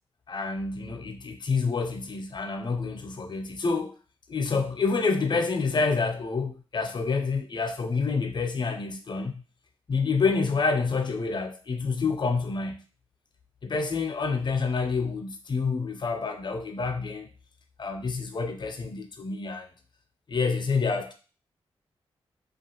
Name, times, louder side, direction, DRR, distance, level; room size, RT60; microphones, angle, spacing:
voice 1, 0.3-3.9 4.3-9.4 9.9-12.8 13.6-17.3 17.8-19.7 20.3-21.1, left 4 dB, 45° left, 0.6 m, -28 dB
2.4 x 2.3 x 2.9 m
supercardioid pair, 45°, 11 cm